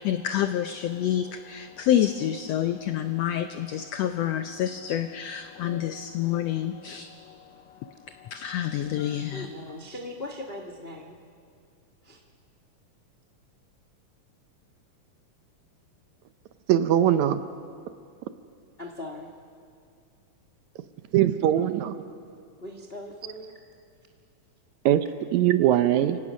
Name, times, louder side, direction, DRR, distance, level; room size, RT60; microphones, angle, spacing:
voice 1, 0.0-7.4 7.8-7.9 8.2-9.5, left 11 dB, 85° left, 9 dB, 1.4 m, -28 dB
voice 2, 9.3-11.2 12.0-12.2 18.8-19.3 22.6-23.5, left 1 dB, 55° left, 3 dB, 0.6 m, -39 dB
voice 3, 16.7-17.4 21.1-22.0 24.9-25.1 25.3-26.2, right 11 dB, 75° right, 11 dB, 1.9 m, -21 dB
29.0 x 17.0 x 6.2 m, 2.3 s
omnidirectional pair, 3.7 m